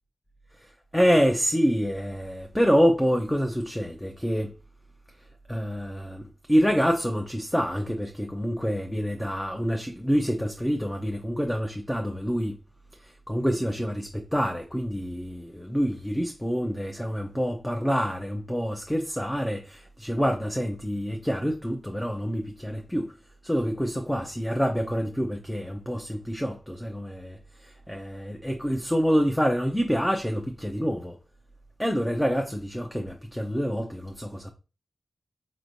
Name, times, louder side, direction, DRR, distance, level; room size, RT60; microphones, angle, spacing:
voice 1, 0.9-4.5 5.5-6.2 6.5-12.6 13.0-23.1 23.4-31.1 31.8-34.5, equal, 5° left, 0.5 m, -27 dB
4.3 x 3.1 x 2.6 m
cardioid pair, 70°, 0 cm